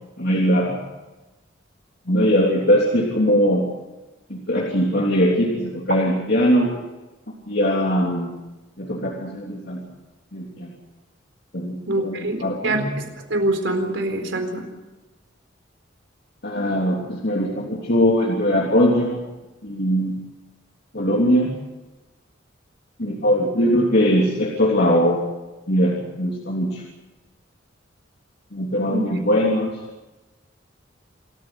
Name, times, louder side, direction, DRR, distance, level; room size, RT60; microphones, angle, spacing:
voice 1, 0.2-0.8 2.1-3.7 4.3-6.7 7.5-8.3 8.8-9.8 10.3-10.7 11.5-12.9 16.4-19.2 19.6-20.2 20.9-21.5 23.0-25.2 25.7-26.8 28.5-29.7, equal, 60° left, -2 dB, 3.4 m, -20 dB
voice 2, 11.9-12.4 12.6-14.6 28.9-29.0, right 1 dB, 70° right, 5 dB, 4.2 m, -24 dB
27.0 x 14.5 x 8.0 m, 1.1 s
head